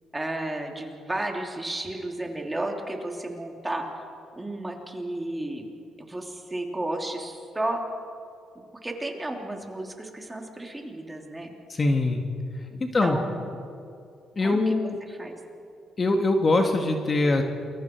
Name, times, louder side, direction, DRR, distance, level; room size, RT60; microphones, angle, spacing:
voice 1, 0.1-3.9 4.4-5.7 6.0-7.8 8.5-11.5 12.7-13.5 14.4-15.4, right 1 dB, 15° right, 2 dB, 3.1 m, -33 dB
voice 2, 11.7-12.2 12.8-13.2 14.4-15.0 16.0-17.4, left 2 dB, 35° left, 4 dB, 1.9 m, -22 dB
28.5 x 22.5 x 4.7 m, 2.5 s
cardioid pair, 90°, 0 cm